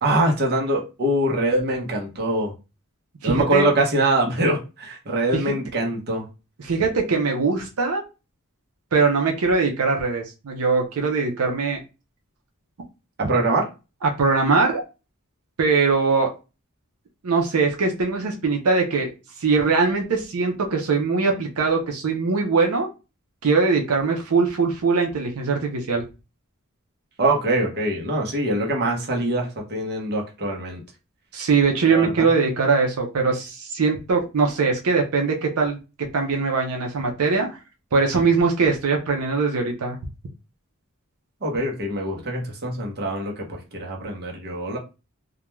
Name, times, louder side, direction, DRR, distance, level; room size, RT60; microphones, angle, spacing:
voice 1, 0.0-2.5 3.2-6.3 13.2-13.6 27.2-30.8 31.9-32.3 41.4-44.8, right 1 dB, 50° right, 0 dB, 0.8 m, -23 dB
voice 2, 3.2-3.7 5.3-5.5 6.6-8.0 8.9-11.8 14.0-14.8 15.6-16.3 17.2-19.1 19.4-22.9 23.4-26.0 31.3-35.8 36.1-37.6 37.9-40.0, right 4 dB, 90° right, 2 dB, 0.6 m, -21 dB
2.3 x 2.2 x 3.0 m, 0.29 s
head